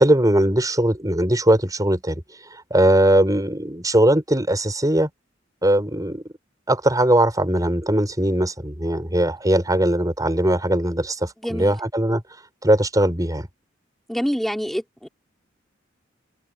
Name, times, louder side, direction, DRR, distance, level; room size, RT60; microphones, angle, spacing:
voice 1, 0.0-2.2 2.7-5.1 5.6-6.2 6.7-12.2 12.6-13.5, right 1 dB, 20° right, 5.9 m, -20 dB
voice 2, 11.4-11.7 14.1-15.1, equal, ahead, 4.1 m, -26 dB
head